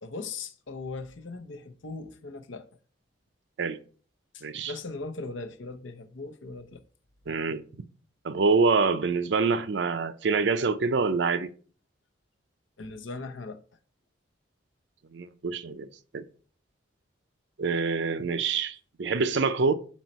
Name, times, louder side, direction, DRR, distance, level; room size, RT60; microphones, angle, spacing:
voice 1, 0.0-2.7 4.3-6.8 12.8-13.6, left 3 dB, 80° left, 0.7 m, -39 dB
voice 2, 4.4-4.7 7.3-7.8 8.2-11.5 15.1-15.9 16.1-16.2 17.6-19.7, right 4 dB, 65° right, 0.5 m, -26 dB
6.3 x 4.3 x 4.0 m
head